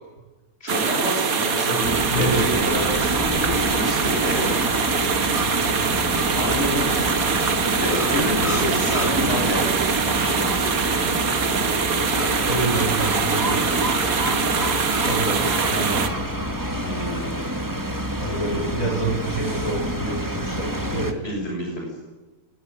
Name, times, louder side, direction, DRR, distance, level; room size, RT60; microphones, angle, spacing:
voice 1, 0.6-4.6 6.4-7.1 7.8-11.0 16.8-17.5 21.2-21.9, equal, 45° left, -1 dB, 6.9 m, -28 dB
sound 1, 0.7-16.1, right 6 dB, 75° right, 2.0 m, -23 dB
voice 2, 1.6-2.8 5.7-6.3 8.3-9.0 12.5-13.9 15.0-16.6 18.2-21.2, right 2 dB, 65° left, 0 dB, 8.3 m, -28 dB
sound 2, 1.8-21.1, equal, 15° right, 2.2 m, -27 dB
21.5 x 19.0 x 9.8 m, 1.2 s
omnidirectional pair, 1.5 m